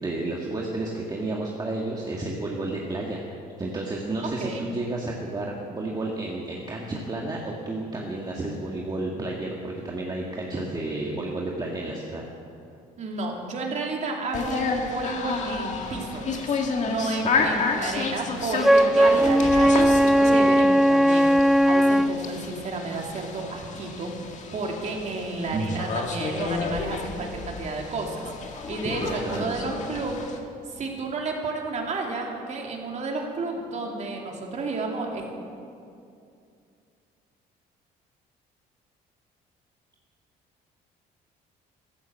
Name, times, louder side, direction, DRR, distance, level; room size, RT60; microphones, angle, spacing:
voice 1, 0.0-3.2 3.6-12.2 17.4-17.5 25.5-25.8 28.8-29.7, right 2 dB, 25° right, -1 dB, 1.8 m, -31 dB
voice 2, 4.2-4.7 13.0-16.5 16.9-24.1 24.5-30.2 30.7-35.3, right 3 dB, 45° right, 0 dB, 2.8 m, -31 dB
sound 1, 14.3-30.4, left 4 dB, 45° left, 1.9 m, -31 dB
Wind instrument woodwind instrument, 18.6-22.2, equal, ahead, 0.3 m, -18 dB
14.5 x 12.5 x 7.6 m, 2.5 s
cardioid pair, 110°, 17 cm